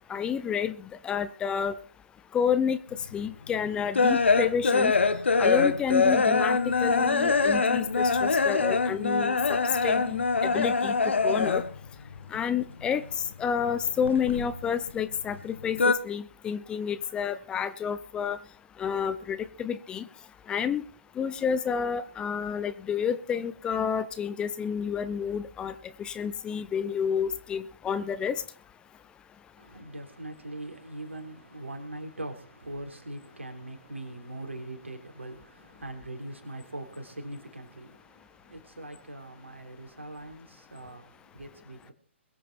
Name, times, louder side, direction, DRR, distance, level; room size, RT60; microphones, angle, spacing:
voice 1, 0.1-1.8 2.3-2.8 3.1-4.9 5.4-10.9 11.2-11.6 12.3-13.0 13.4-18.4 18.8-20.1 20.5-20.8 21.2-25.7 26.0-28.4, left 7 dB, 15° left, 13 dB, 0.7 m, -29 dB
sound 1, 3.1-11.9 12.1-13.3 13.6-15.0 15.3-15.9, left 4 dB, 65° left, 1.3 m, -24 dB
voice 2, 29.6-41.9, right 1 dB, 75° right, 5 dB, 3.9 m, -41 dB
22.0 x 8.4 x 4.5 m, 0.40 s
figure-of-eight pair, 125°, 7 cm